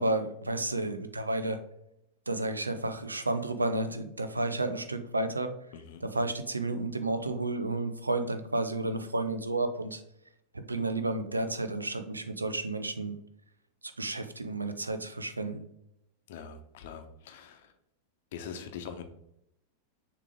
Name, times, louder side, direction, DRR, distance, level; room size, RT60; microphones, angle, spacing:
voice 1, 0.0-1.6 2.3-5.5 6.0-10.0 10.5-13.1 14.0-15.7, right 2 dB, 80° right, 9 dB, 0.6 m, -31 dB
voice 2, 16.3-17.7 18.3-19.0, left 7 dB, 55° left, 6 dB, 0.9 m, -43 dB
6.8 x 3.1 x 4.7 m, 0.80 s
figure-of-eight pair, 90°, 0 cm